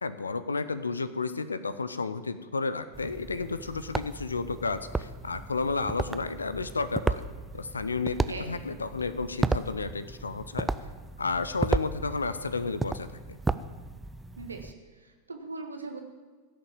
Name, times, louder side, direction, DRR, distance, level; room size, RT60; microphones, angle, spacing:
voice 1, 0.0-7.2 7.5-8.2 8.5-10.7 11.2-13.4, left 4 dB, 75° left, 13 dB, 0.6 m, -32 dB
sound 1, 2.9-14.7, right 3 dB, 10° right, 0.4 m, -34 dB
voice 2, 14.4-16.0, right 3 dB, 80° right, 4 dB, 1.2 m, -40 dB
16.5 x 6.8 x 7.2 m, 1.5 s
figure-of-eight pair, 90°, 0 cm